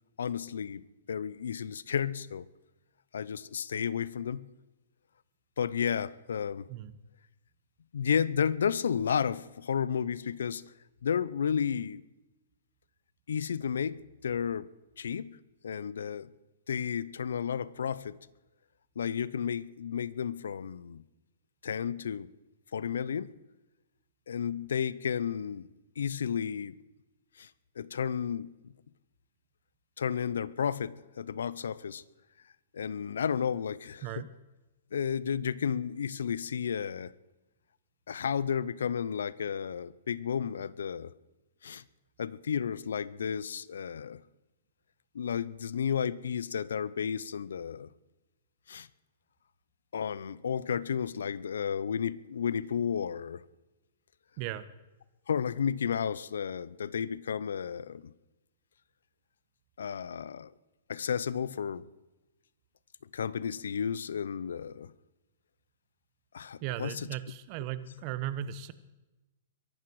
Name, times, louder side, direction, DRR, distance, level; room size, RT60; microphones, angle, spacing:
voice 1, 0.2-2.5 3.1-4.5 5.6-6.7 7.9-10.7 11.0-12.1 13.3-14.7 15.0-15.4 15.6-16.3 16.7-18.2 19.0-21.0 21.6-22.3 22.7-23.4 24.3-25.7 26.0-26.8 27.4-27.5 27.8-28.7 30.0-32.0 32.7-34.1 34.9-37.1 38.1-41.1 41.6-41.8 42.2-44.2 45.1-47.9 48.7-48.9 49.9-53.4 55.3-58.1 59.8-60.5 60.9-61.9 63.1-64.9 66.3-67.1, left 7 dB, 80° left, 20 dB, 0.7 m, -32 dB
voice 2, 54.4-54.7 66.6-68.7, right 12 dB, 40° right, 14 dB, 1.3 m, -37 dB
23.0 x 12.0 x 4.8 m, 1.1 s
hypercardioid pair, 130°, 0 cm